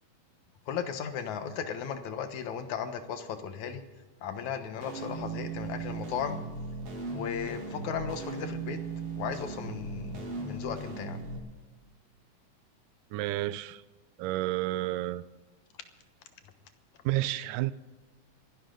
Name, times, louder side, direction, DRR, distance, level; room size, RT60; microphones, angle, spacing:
voice 1, 0.7-3.8 4.2-6.4 7.1-8.8 9.2-11.2, left 7 dB, 65° left, 2.5 m, -36 dB
sound 1, 4.8-11.4, right 3 dB, 45° right, 3.3 m, -38 dB
voice 2, 13.1-13.8 14.2-15.2 17.0-17.7, right 16 dB, 80° right, 2.2 m, -30 dB
26.5 x 11.5 x 3.9 m
omnidirectional pair, 3.8 m